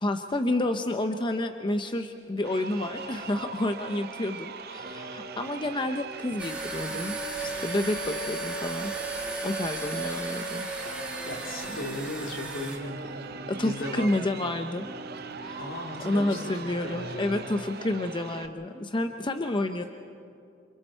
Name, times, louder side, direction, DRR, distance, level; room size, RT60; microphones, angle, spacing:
voice 1, 0.0-8.9 9.4-10.7 13.5-14.9 15.4-15.6 16.0-19.8, left 1 dB, 25° left, 7 dB, 0.6 m, -30 dB
Crowd, 2.4-18.5, right 6 dB, 55° right, 0.8 m, -43 dB
sound 1, 2.8-18.8, right 1 dB, 35° right, 3.2 m, -45 dB
sound 2, 6.4-12.8, right 2 dB, 5° right, 2.3 m, -35 dB
voice 2, 11.2-14.2 15.6-17.5 19.1-19.2, left 1 dB, 75° left, 0 dB, 3.5 m, -37 dB
28.0 x 26.5 x 4.5 m, 2.4 s
head